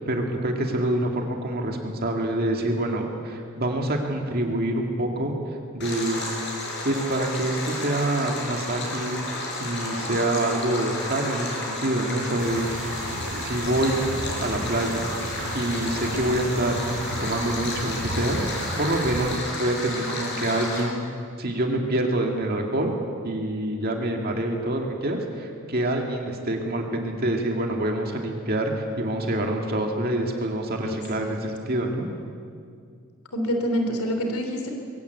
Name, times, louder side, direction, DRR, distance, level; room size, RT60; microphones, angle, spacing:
voice 1, 0.1-5.3 5.7-6.2 6.8-12.7 13.4-14.0 14.4-15.1 15.5-18.4 18.8-19.3 19.6-21.0 21.4-22.9 23.2-32.1, right 1 dB, 45° right, 2 dB, 2.2 m, -26 dB
Stream, 5.8-20.8, left 2 dB, 50° left, 5.9 m, -32 dB
sound 1, 12.4-19.4, right 1 dB, 85° right, 1.8 m, -35 dB
voice 2, 30.8-31.4 33.3-34.7, equal, 90° left, 4 dB, 3.3 m, -27 dB
22.0 x 17.0 x 8.3 m, 2.2 s
head